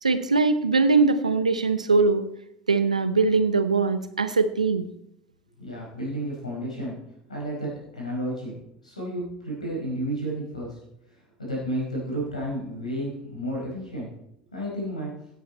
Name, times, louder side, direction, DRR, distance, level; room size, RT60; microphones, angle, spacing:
voice 1, 0.0-2.2 2.7-4.9, right 4 dB, 90° right, 12 dB, 0.7 m, -21 dB
voice 2, 5.6-7.0 7.3-8.5 8.8-10.8 11.4-14.1 14.5-15.1, right 1 dB, 90° left, -3 dB, 4.7 m, -31 dB
16.0 x 8.4 x 4.3 m, 0.79 s
figure-of-eight pair, 70°, 4 cm